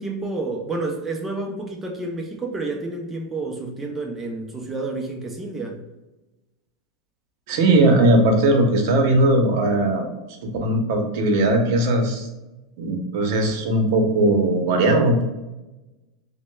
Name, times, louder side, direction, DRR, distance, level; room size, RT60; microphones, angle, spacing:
voice 1, 0.0-5.8, right 2 dB, 10° right, 1 dB, 0.5 m, -29 dB
voice 2, 7.5-10.0 10.4-12.3 12.8-15.3, right 1 dB, 60° right, 3 dB, 0.8 m, -19 dB
6.2 x 2.1 x 2.2 m, 1.0 s
supercardioid pair, 165°, 2 cm